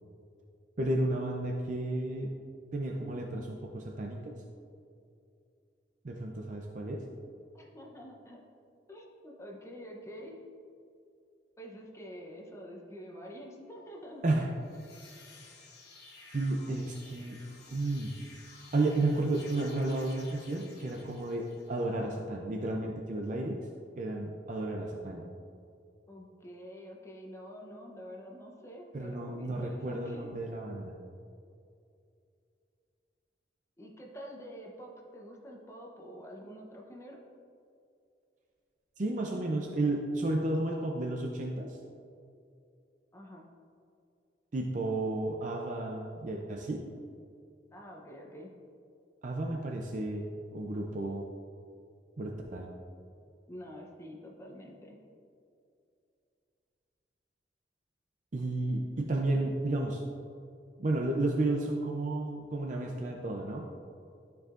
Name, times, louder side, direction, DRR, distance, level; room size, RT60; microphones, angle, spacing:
voice 1, 0.8-2.3 2.7-4.3 6.0-7.0 14.2-14.5 16.3-17.4 17.7-18.1 18.7-23.6 24.0-25.2 28.9-30.9 39.0-41.8 44.5-46.8 49.2-51.3 52.2-52.7 58.3-60.0 60.8-63.7, right 2 dB, 45° right, 1 dB, 0.5 m, -32 dB
voice 2, 7.5-8.4 8.9-10.4 11.6-14.5 26.1-30.3 33.8-37.2 43.1-43.5 47.7-48.5 53.5-55.0, equal, 15° left, -1 dB, 0.7 m, -47 dB
sound 1, 14.5-21.9, left 3 dB, 65° left, 1.2 m, -54 dB
12.0 x 4.7 x 2.5 m, 2.5 s
head